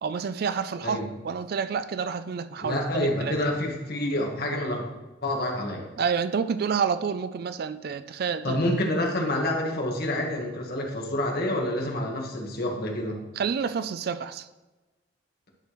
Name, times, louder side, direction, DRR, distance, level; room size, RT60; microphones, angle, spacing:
voice 1, 0.0-3.4 6.0-8.6 13.4-14.5, right 6 dB, 55° right, 12 dB, 0.4 m, -29 dB
voice 2, 2.6-4.9 5.2-5.8 8.4-13.2, left 1 dB, 55° left, 0 dB, 1.5 m, -28 dB
11.0 x 5.8 x 3.1 m, 1.1 s
head